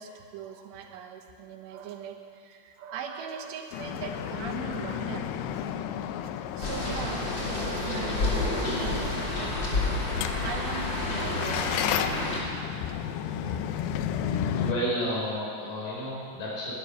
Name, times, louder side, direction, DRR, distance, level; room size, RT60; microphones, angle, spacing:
voice 1, 0.0-5.9 6.2-11.9 12.2-13.9, right 6 dB, 85° right, 4 dB, 3.3 m, -41 dB
sound 1, 3.7-14.7, left 9 dB, 80° left, 2.7 m, -33 dB
sound 2, 6.6-12.4, left 2 dB, 35° left, 2.5 m, -29 dB
voice 2, 14.3-16.7, equal, 60° left, -5 dB, 6.5 m, -32 dB
12.5 x 11.0 x 9.8 m, 2.2 s
omnidirectional pair, 5.0 m